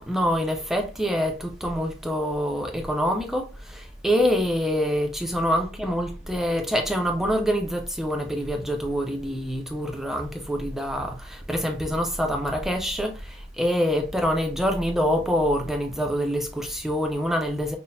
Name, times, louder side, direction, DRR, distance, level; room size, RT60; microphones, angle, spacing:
voice 1, 0.0-17.8, equal, ahead, 0.4 m, -26 dB
5.7 x 2.0 x 2.6 m
head